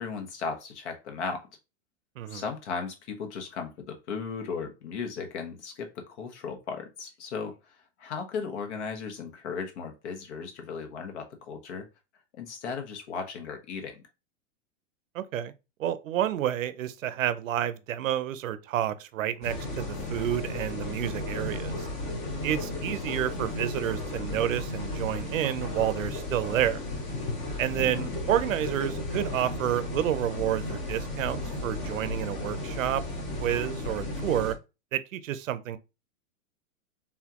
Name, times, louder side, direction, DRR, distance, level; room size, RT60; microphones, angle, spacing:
voice 1, 0.0-1.5 2.3-7.6 8.0-11.9 12.3-14.0 27.8-28.1, left 5 dB, 55° left, 1.3 m, -36 dB
voice 2, 15.1-15.5 15.8-21.9 22.4-26.8 27.6-33.0 33.4-34.5 34.9-35.8, right 11 dB, 70° right, 0.7 m, -29 dB
sound 1, 19.4-34.5, left 2 dB, 15° left, 0.7 m, -34 dB
4.2 x 3.7 x 3.0 m
supercardioid pair, 170°, 41 cm